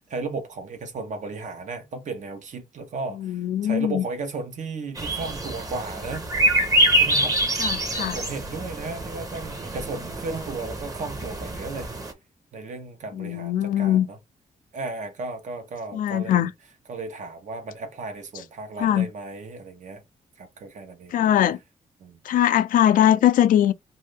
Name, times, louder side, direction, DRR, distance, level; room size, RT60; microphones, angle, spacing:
voice 1, 0.1-6.3 6.9-7.4 7.9-11.9 12.5-14.2 14.7-16.5 16.9-20.0 20.4-21.1 22.0-22.2, right 3 dB, 60° right, 1.0 m, -35 dB
voice 2, 3.2-4.0 7.6-8.2 13.1-14.1 15.9-16.5 18.8-19.1 21.1-21.6 22.2-23.7, left 11 dB, 80° left, 0.4 m, -21 dB
sound 1, 5.0-12.1, right 1 dB, 25° right, 0.9 m, -25 dB
2.6 x 2.6 x 3.4 m
cardioid pair, 90°, 14 cm